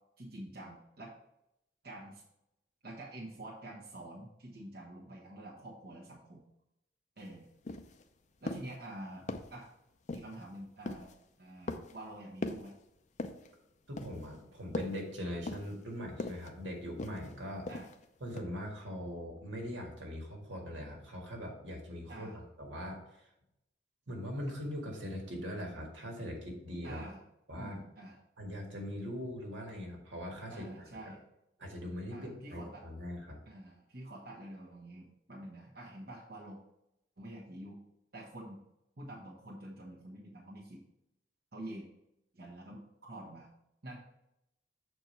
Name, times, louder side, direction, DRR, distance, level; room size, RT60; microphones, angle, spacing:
voice 1, 0.2-1.1 1.8-2.2 2.8-6.4 7.2-7.5 8.4-9.2 9.5-9.7 10.1-11.1 11.4-12.7 17.7-17.9 22.1-22.4 26.8-27.2 27.6-28.2 30.5-31.2 32.1-32.8 33.4-36.6 37.2-37.8 38.1-38.6 39.0-40.8 41.5-41.9 42.3-43.5 43.8-44.0, right 1 dB, 55° right, -3 dB, 1.1 m, -47 dB
sound 1, 7.2-7.3 7.6-8.0 8.5-8.8 9.3-9.6 10.1-10.4 10.8-11.2 11.7-12.0 12.4-12.7 13.2-13.5 14.0-14.3 14.7-15.0 15.5-15.8 16.2-16.5 17.0-17.3 17.7-18.0 18.4-18.5, left 2 dB, 40° left, 0.5 m, -40 dB
voice 2, 13.9-17.7 18.2-23.2 24.1-27.0 27.5-27.8 28.4-31.1 31.6-33.4, equal, 80° right, 0 dB, 1.8 m, -41 dB
6.9 x 4.5 x 4.4 m, 0.84 s
head